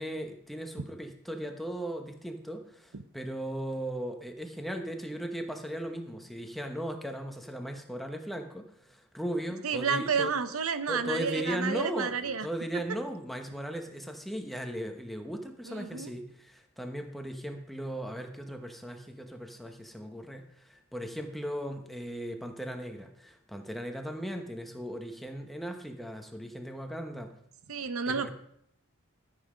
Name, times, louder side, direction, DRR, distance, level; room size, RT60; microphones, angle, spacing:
voice 1, 0.0-10.3 10.9-27.3 28.1-28.3, equal, ahead, 4 dB, 1.1 m, -37 dB
voice 2, 9.6-12.5 15.7-16.1 27.7-28.3, right 5 dB, 75° right, 11 dB, 0.8 m, -30 dB
13.5 x 7.6 x 5.1 m, 0.72 s
head